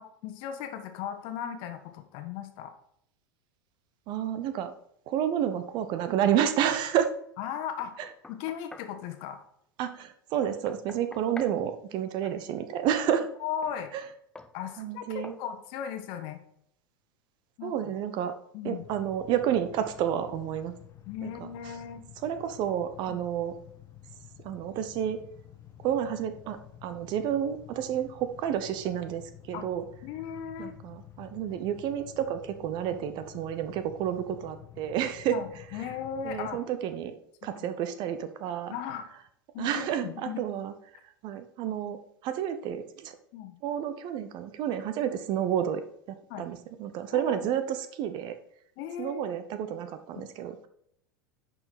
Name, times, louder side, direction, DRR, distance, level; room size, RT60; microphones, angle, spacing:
voice 1, 0.0-2.7 7.4-7.9 8.3-9.4 13.4-13.9 14.5-16.4 17.6-17.7 18.5-18.8 21.1-22.0 23.1-23.2 29.5-29.7 30.0-30.7 32.9-33.0 35.3-36.6 37.4-37.5 38.7-39.1 39.5-40.4 43.3-43.6 46.3-46.5 47.1-47.4 48.8-49.2, left 8 dB, 45° left, 7 dB, 1.4 m, -37 dB
voice 2, 4.1-4.7 5.1-7.1 8.0-8.1 9.8-13.3 13.9-14.0 14.8-15.4 17.6-18.4 18.6-20.7 21.2-21.3 22.2-23.5 24.4-25.2 25.8-29.8 30.6-35.4 36.2-37.1 37.4-38.7 39.6-40.7 41.2-43.2 43.6-45.8 46.4-48.3 49.0-50.7, right 10 dB, 40° right, 10 dB, 1.0 m, -30 dB
Knock, 7.8-9.0 10.4-11.6 13.6-13.8 14.4-14.6 15.2-15.5, left 3 dB, 10° left, 0.6 m, -46 dB
sound 1, 18.8-36.6, left 11 dB, 25° left, 1.2 m, -50 dB
10.5 x 5.9 x 4.1 m, 0.71 s
figure-of-eight pair, 85°, 11 cm